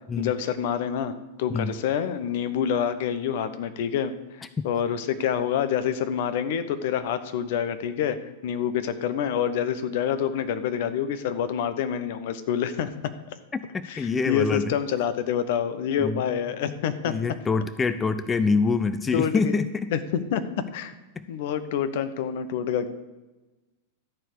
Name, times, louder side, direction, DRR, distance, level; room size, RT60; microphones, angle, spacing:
voice 1, 0.2-8.2 8.4-13.1 13.9-17.1 19.1-19.5 19.9-20.9 21.3-22.9, left 8 dB, 60° left, 12 dB, 0.9 m, -27 dB
voice 2, 13.5-14.7 16.0-16.2 17.1-19.9 21.2-21.3, left 4 dB, 20° left, 13 dB, 0.5 m, -25 dB
13.5 x 4.6 x 8.1 m, 1.1 s
hypercardioid pair, 100°, 0 cm